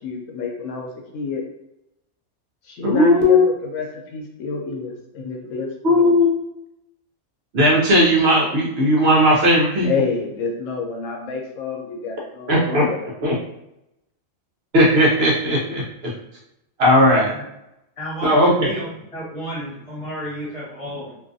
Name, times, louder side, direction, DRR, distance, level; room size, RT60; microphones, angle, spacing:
voice 1, 0.0-1.4 2.6-3.9 4.1-6.1 9.8-13.0, left 4 dB, 85° left, 1 dB, 1.0 m, -28 dB
voice 2, 2.8-3.4 5.8-6.4 7.5-9.9 12.5-12.9 13.2-13.3 14.7-15.8 16.8-17.3 18.2-18.7, left 1 dB, 60° right, -3 dB, 0.8 m, -16 dB
voice 3, 18.0-21.2, equal, 30° left, -8 dB, 1.1 m, -32 dB
2.5 x 2.4 x 2.5 m, 0.84 s
omnidirectional pair, 1.3 m